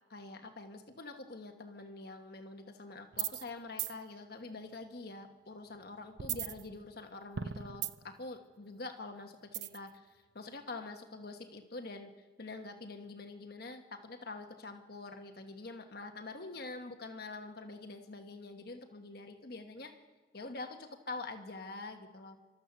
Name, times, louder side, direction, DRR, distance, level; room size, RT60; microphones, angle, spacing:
voice 1, 0.1-12.1 12.4-20.0 20.3-22.4, left 3 dB, 55° left, 5 dB, 1.3 m, -46 dB
sound 1, 3.1-3.5 3.8-3.9 6.2-7.0 7.4-8.2 9.5-9.9, right 9 dB, 65° right, 0.6 m, -37 dB
29.5 x 13.0 x 6.9 m, 1.3 s
head